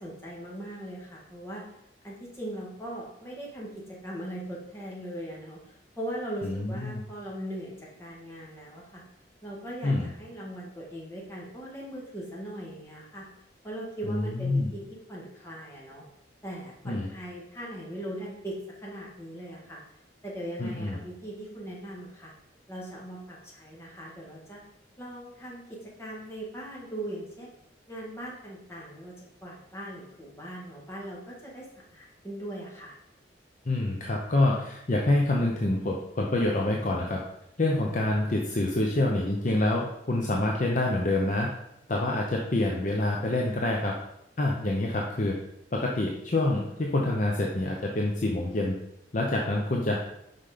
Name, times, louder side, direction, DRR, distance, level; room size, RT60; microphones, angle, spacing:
voice 1, 0.0-1.6 2.0-9.0 9.4-13.3 13.6-14.8 15.1-16.0 16.4-19.8 20.2-22.3 22.7-24.6 25.0-27.5 27.9-29.1 29.4-31.7 31.9-32.9, right 1 dB, 15° left, -4 dB, 1.7 m, -39 dB
voice 2, 6.4-7.0 9.8-10.1 14.0-14.7 16.8-17.1 20.6-21.0 33.6-37.2 37.6-41.5 41.9-43.9 44.4-45.4 45.7-48.7 49.1-50.0, left 2 dB, 40° left, -1 dB, 0.7 m, -26 dB
5.7 x 5.3 x 5.0 m, 0.81 s
head